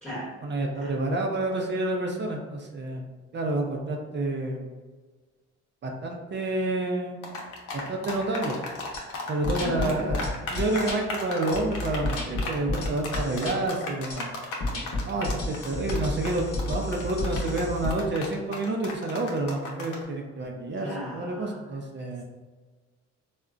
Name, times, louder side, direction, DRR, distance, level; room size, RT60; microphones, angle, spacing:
voice 1, 0.4-4.7 5.8-7.2 7.7-8.6 9.3-10.2 10.5-14.3 15.1-22.2, right 2 dB, 40° right, 1 dB, 0.4 m, -29 dB
sound 1, 7.2-20.0, left 3 dB, 80° left, 0.7 m, -35 dB
sound 2, 8.9-9.0 9.4-11.0 11.5-13.6 14.1-14.2 14.6-17.9, left 2 dB, 55° left, 0.9 m, -31 dB
voice 2, 9.6-9.9 20.8-21.6, left 1 dB, ahead, -8 dB, 1.0 m, -36 dB
3.6 x 2.1 x 2.4 m, 1.4 s
cardioid pair, 90°, 30 cm